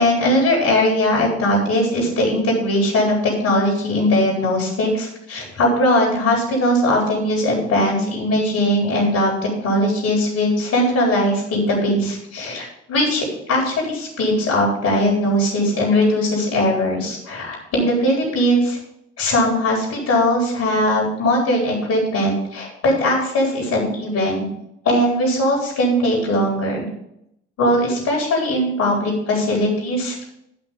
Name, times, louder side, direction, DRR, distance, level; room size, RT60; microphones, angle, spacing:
voice 1, 0.0-18.8 19.2-24.5 24.8-26.9 27.6-30.2, left 1 dB, 55° left, -2 dB, 4.3 m, -19 dB
12.0 x 6.0 x 5.2 m, 0.78 s
figure-of-eight pair, 50°, 31 cm